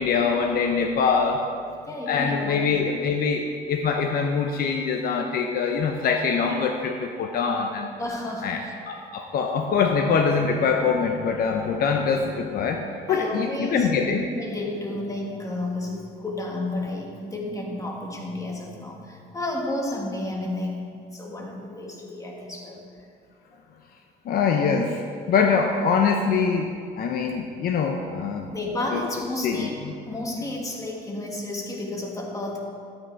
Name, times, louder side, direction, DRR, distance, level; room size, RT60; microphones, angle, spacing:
voice 1, 0.0-1.4 2.1-7.9 8.4-14.2 24.2-25.0 25.3-28.5 28.9-29.1 29.4-29.9, left 5 dB, 60° left, 4 dB, 0.9 m, -24 dB
voice 2, 1.9-2.7 8.0-8.7 13.1-13.9 14.2-22.8 28.5-32.6, left 2 dB, 20° left, 0 dB, 1.9 m, -31 dB
13.0 x 8.6 x 4.6 m, 2.2 s
cardioid pair, 110°, 17 cm